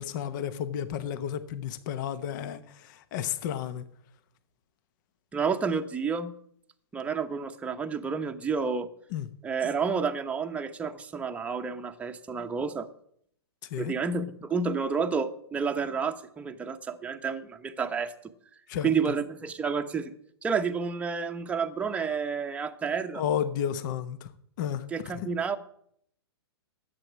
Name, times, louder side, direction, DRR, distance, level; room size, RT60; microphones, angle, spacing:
voice 1, 0.0-3.8 9.1-9.3 13.7-13.9 18.7-18.9 23.1-24.2 24.6-24.8 25.1-25.3, left 9 dB, 45° left, 13 dB, 1.0 m, -32 dB
voice 2, 5.3-6.3 6.9-8.9 9.4-12.9 13.8-18.1 18.8-20.1 20.4-23.2 24.9-25.6, right 5 dB, 10° right, 5 dB, 0.9 m, -30 dB
12.0 x 8.4 x 7.3 m, 0.68 s
hypercardioid pair, 130°, 14 cm